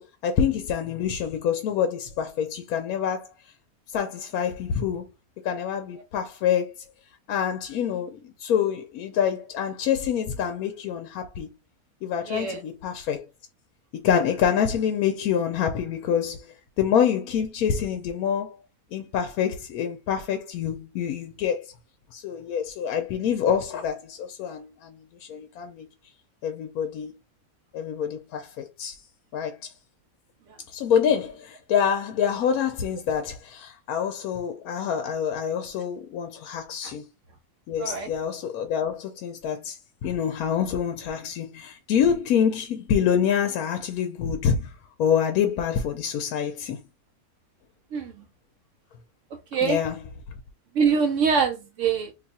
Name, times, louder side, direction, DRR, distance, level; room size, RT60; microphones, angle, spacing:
voice 1, 0.0-3.3 3.9-5.1 5.4-6.7 7.3-11.5 12.0-13.2 13.9-18.6 18.9-21.7 22.1-25.8 26.4-27.1 27.7-29.0 29.3-29.7 30.7-37.0 37.7-44.7 45.0-46.8 49.6-50.1, left 8 dB, 75° left, 1.0 m, -26 dB
voice 2, 12.3-12.6 37.8-38.1 47.9-48.1 49.5-49.8 50.8-52.1, right 6 dB, 70° right, 0.8 m, -23 dB
2.8 x 2.3 x 4.0 m
omnidirectional pair, 1.6 m